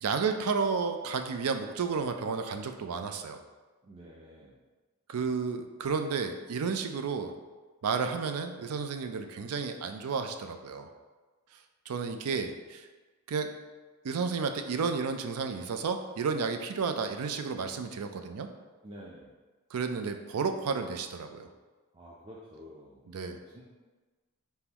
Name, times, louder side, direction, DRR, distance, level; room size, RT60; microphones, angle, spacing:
voice 1, 0.0-3.4 5.1-7.3 7.8-10.9 11.9-12.9 13.3-13.6 14.0-18.5 19.7-21.5 23.1-23.4, right 5 dB, 75° right, 7 dB, 0.4 m, -32 dB
voice 2, 3.8-4.6 18.8-19.3 21.9-23.6, equal, 25° right, -6 dB, 0.5 m, -49 dB
4.1 x 3.8 x 2.9 m, 1.3 s
head